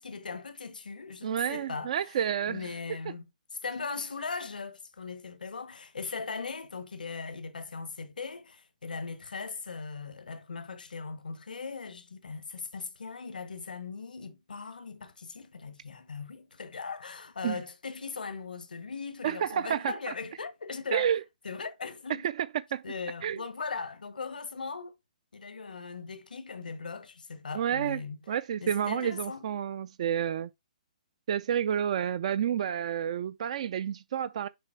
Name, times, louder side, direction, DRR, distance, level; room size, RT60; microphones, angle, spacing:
voice 1, 0.0-2.1 2.5-3.2 3.5-21.2 21.4-22.2 22.8-24.9 25.3-28.2 28.6-29.4, left 4 dB, 90° left, 1.1 m, -39 dB
voice 2, 1.2-2.7 17.4-17.6 19.2-19.9 20.9-21.2 22.2-22.8 23.2-23.4 27.5-28.0 28.3-30.5 31.3-34.5, right 9 dB, 50° right, 0.4 m, -30 dB
6.9 x 4.1 x 4.5 m
hypercardioid pair, 150°, 5 cm